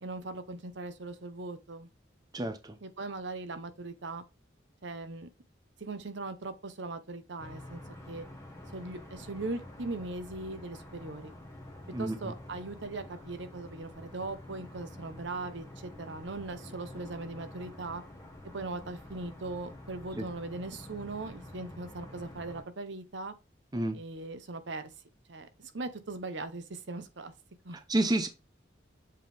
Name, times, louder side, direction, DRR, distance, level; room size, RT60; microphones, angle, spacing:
voice 1, 0.0-1.9 2.8-4.2 4.8-5.3 5.8-8.2 8.7-11.3 12.0-18.0 18.5-23.3 23.9-24.9 25.3-27.3 27.6-27.8, right 3 dB, 70° right, 0.8 m, -39 dB
voice 2, 2.3-2.7 11.9-12.3 20.2-20.3 23.7-24.0 27.9-28.3, right 1 dB, 20° right, 0.6 m, -29 dB
sound 1, 7.4-22.6, left 1 dB, 15° left, 1.4 m, -48 dB
7.6 x 3.7 x 3.4 m
head